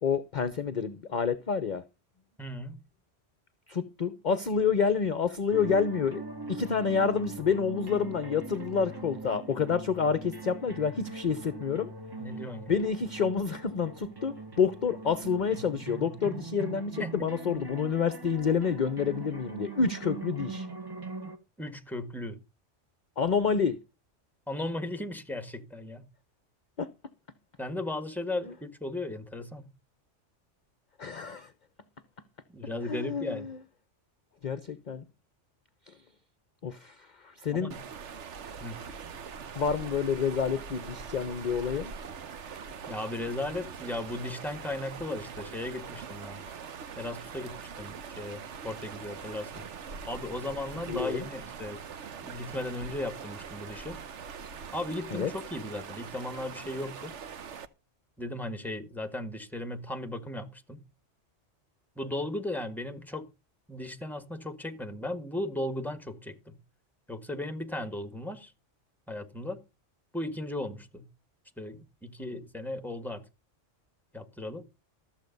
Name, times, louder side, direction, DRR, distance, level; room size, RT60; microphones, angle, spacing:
voice 1, 0.0-1.8 3.7-11.9 12.7-20.7 23.2-23.8 26.8-26.9 31.0-31.5 32.9-33.6 34.4-35.0 35.9-36.0 36.6-37.7 39.5-41.9 50.9-51.3 55.1-55.3, left 6 dB, 45° left, 0.8 m, -28 dB
voice 2, 2.4-2.8 12.2-12.7 17.0-17.1 21.6-22.4 24.5-26.1 27.6-29.7 32.5-33.5 37.5-37.8 38.6-38.8 42.9-46.4 47.0-49.6 50.1-51.8 52.2-54.0 54.7-57.1 58.2-60.8 61.9-63.3 63.7-66.6 67.1-68.5 69.1-69.6 70.1-71.0 71.6-73.2 74.1-74.7, left 1 dB, ahead, 1.6 m, -36 dB
sound 1, 5.5-21.4, right 3 dB, 20° right, 1.3 m, -41 dB
sound 2, 37.7-57.7, right 6 dB, 75° right, 1.3 m, -42 dB
14.0 x 7.4 x 5.3 m
omnidirectional pair, 1.2 m